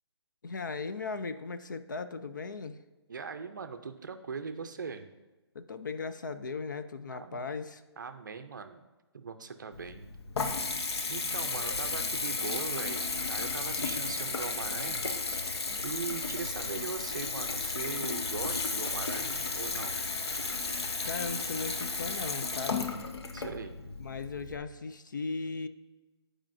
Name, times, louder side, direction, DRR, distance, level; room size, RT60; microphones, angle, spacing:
voice 1, 0.4-2.8 5.5-7.8 11.6-11.7 21.0-22.9 24.0-25.7, left 4 dB, 45° left, 11 dB, 0.4 m, -37 dB
voice 2, 3.1-5.0 7.1-7.4 8.0-8.8 9.1-10.1 11.1-15.0 15.3-15.5 15.8-20.0 23.3-23.8, right 5 dB, 45° right, 9 dB, 0.5 m, -40 dB
Water tap faucet / Bathtub (filling or washing) / Trickle dribble, 9.7-24.6, left 4 dB, 65° left, 0.9 m, -34 dB
14.5 x 4.9 x 2.6 m, 1.1 s
hypercardioid pair, 180°, 14 cm